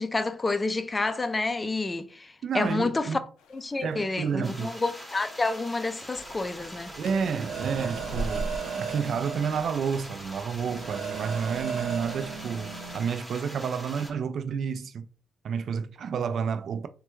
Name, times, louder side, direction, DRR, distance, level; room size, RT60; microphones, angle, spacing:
voice 1, 0.0-3.2 3.5-6.9, left 3 dB, 20° left, 0.4 m, -29 dB
voice 2, 2.4-3.2 3.8-4.7 7.0-15.1 15.4-16.9, right 6 dB, 60° right, 0.3 m, -30 dB
sound 1, 3.4-8.6, right 1 dB, 90° left, 0.5 m, -41 dB
sound 2, 4.4-14.1, equal, 5° left, 0.8 m, -43 dB
sound 3, 6.1-13.0, right 6 dB, 85° right, 1.1 m, -37 dB
3.3 x 2.2 x 3.0 m
cardioid pair, 90°, 0 cm